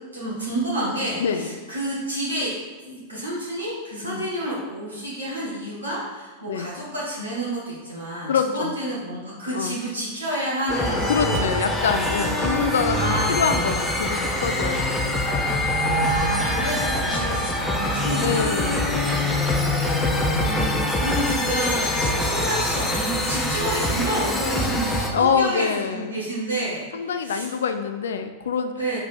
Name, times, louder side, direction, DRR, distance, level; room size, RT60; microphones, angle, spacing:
voice 1, 0.1-2.6 2.8-11.7 12.9-13.4 16.0-18.9 20.1-27.5 28.8-29.0, right 1 dB, 75° right, -7 dB, 1.9 m, -29 dB
voice 2, 1.2-1.6 4.0-4.3 6.5-6.7 8.3-8.7 9.5-9.8 10.9-15.2 18.2-19.4 25.1-26.2 26.9-28.7, left 6 dB, 65° left, 8 dB, 0.4 m, -25 dB
sound 1, 10.7-25.1, left 1 dB, 10° left, 0.9 m, -24 dB
4.9 x 4.8 x 4.5 m, 1.3 s
figure-of-eight pair, 90°, 0 cm